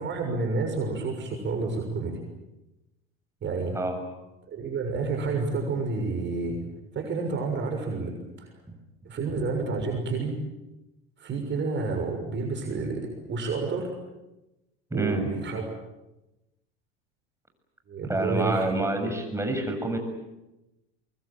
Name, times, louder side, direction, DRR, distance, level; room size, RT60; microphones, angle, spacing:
voice 1, 0.0-2.2 3.4-3.8 4.5-6.6 6.9-8.5 9.0-10.4 11.2-13.9 14.9-15.6 17.9-18.7, right 4 dB, 40° right, 3 dB, 6.7 m, -29 dB
voice 2, 14.9-15.3 18.1-20.0, right 2 dB, 10° right, 5 dB, 7.3 m, -27 dB
24.0 x 23.5 x 9.0 m, 0.98 s
hypercardioid pair, 90°, 29 cm